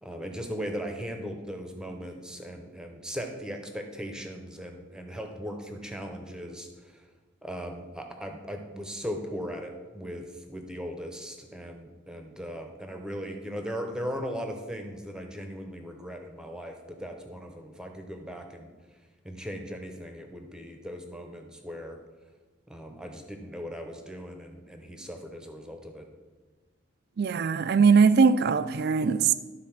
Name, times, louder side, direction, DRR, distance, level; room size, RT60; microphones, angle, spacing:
voice 1, 0.0-7.1 7.4-18.7 19.2-22.0 22.7-26.1, equal, 5° right, 0.8 m, -38 dB
voice 2, 27.2-29.3, right 5 dB, 50° right, 0.4 m, -21 dB
12.5 x 4.2 x 5.8 m
head